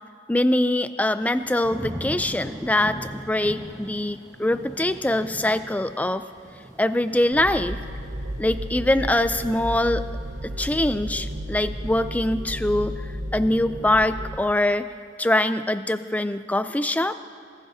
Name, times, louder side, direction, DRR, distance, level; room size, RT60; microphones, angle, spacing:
voice 1, 0.3-6.3 6.8-7.8 8.4-10.0 10.4-14.9 15.2-17.1, left 1 dB, 10° left, 12 dB, 0.4 m, -23 dB
Thunder / Rain, 1.2-12.1 12.5-13.0, equal, 20° right, 1.2 m, -41 dB
sound 1, 7.3-14.4, equal, 85° right, 1.1 m, -33 dB
24.0 x 15.5 x 2.8 m, 2.5 s
head